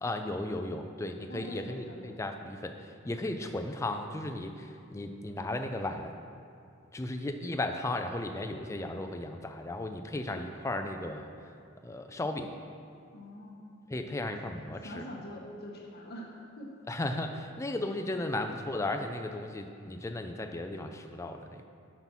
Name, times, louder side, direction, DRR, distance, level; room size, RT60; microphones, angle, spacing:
voice 1, 0.0-6.2 6.9-11.3 11.8-12.5 13.9-15.1 16.9-21.6, left 2 dB, 15° left, 5 dB, 0.3 m, -35 dB
voice 2, 1.3-2.2 13.1-13.8 14.2-14.4 14.8-16.7, equal, 50° left, -1 dB, 1.0 m, -44 dB
5.8 x 5.4 x 6.0 m, 2.4 s
head